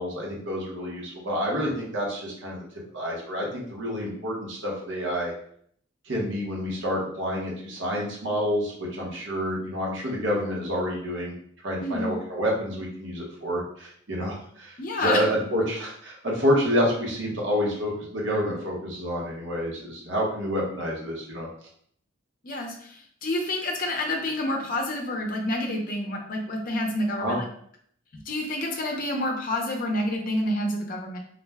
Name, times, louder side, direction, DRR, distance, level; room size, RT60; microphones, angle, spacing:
voice 1, 0.0-2.6 2.9-5.3 6.1-11.3 11.6-21.5 27.2-27.4, equal, 65° right, -3 dB, 0.9 m, -28 dB
voice 2, 11.8-12.1 14.8-15.2 22.4-27.4 28.1-31.2, left 1 dB, 45° left, 1 dB, 0.5 m, -28 dB
2.4 x 2.1 x 3.3 m, 0.63 s
head